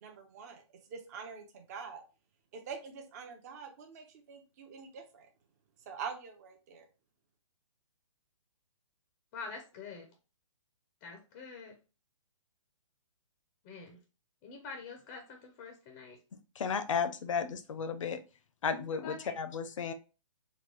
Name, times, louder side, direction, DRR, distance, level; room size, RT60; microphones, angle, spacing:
voice 1, 0.0-2.0 2.5-5.3 5.9-6.9, right 6 dB, 30° right, 4 dB, 0.6 m, -45 dB
voice 2, 9.3-10.1 11.0-11.7 13.6-14.0 14.4-16.2 19.0-19.3, left 5 dB, 20° left, 3 dB, 0.5 m, -45 dB
voice 3, 16.3-18.2 18.6-19.9, left 6 dB, 70° left, 10 dB, 0.6 m, -34 dB
3.9 x 2.2 x 3.0 m, 0.32 s
hypercardioid pair, 160°, 17 cm